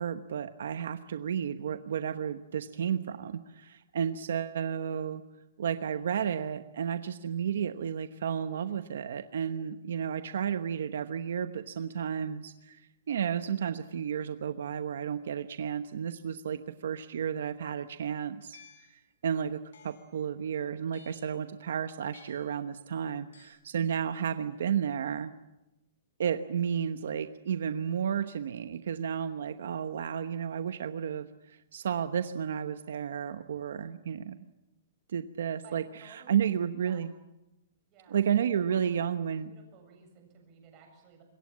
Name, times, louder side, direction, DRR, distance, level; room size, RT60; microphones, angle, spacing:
voice 1, 0.0-5.2 5.6-18.6 18.9-25.3 26.2-34.4 35.1-37.1 38.1-39.5, right 8 dB, 75° right, 10 dB, 1.0 m, -32 dB
sound 1, 18.5-19.0 19.7-20.2 20.9-21.4 22.1-22.6 23.3-23.5, left 5 dB, 85° left, 7.5 m, -55 dB
voice 2, 35.6-36.4 36.8-37.0 37.9-38.3 38.6-38.8 39.5-41.2, right 5 dB, 25° right, 2 dB, 7.3 m, -56 dB
26.0 x 22.5 x 7.4 m, 0.97 s
hypercardioid pair, 170°, 0 cm